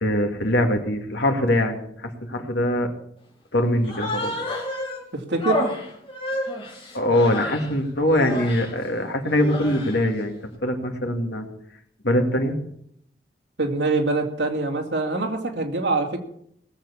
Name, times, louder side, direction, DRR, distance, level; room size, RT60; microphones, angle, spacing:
voice 1, 0.0-2.9 3.5-4.3 6.9-10.3 10.6-11.5 12.0-12.6, left 1 dB, 75° left, 4 dB, 2.4 m, -22 dB
Human voice, 3.8-5.0 5.4-7.7 8.1-8.7 9.3-10.1, left 1 dB, 30° left, 2.9 m, -30 dB
voice 2, 5.1-5.6 13.6-16.2, right 3 dB, 80° right, 2 dB, 2.7 m, -24 dB
19.0 x 7.5 x 7.2 m, 0.70 s
head